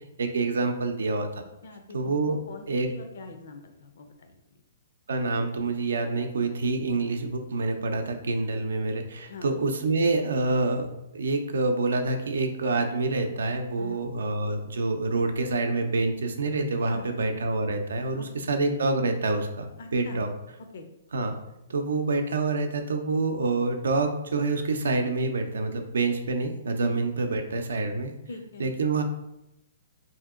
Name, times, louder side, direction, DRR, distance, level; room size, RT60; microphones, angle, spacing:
voice 1, 0.2-1.4 1.9-2.4 2.7-2.9 5.1-10.9 11.1-20.3 21.1-21.3 21.7-28.1 28.6-29.0, right 3 dB, 85° right, 5 dB, 0.5 m, -27 dB
voice 2, 1.6-4.3 9.3-9.5 13.8-14.0 16.9-17.2 18.2-18.5 19.8-20.2 20.7-20.9 26.8-27.0 28.3-28.7, left 2 dB, 65° left, 6 dB, 0.6 m, -42 dB
2.8 x 2.8 x 3.6 m, 0.86 s
hypercardioid pair, 155°, 0 cm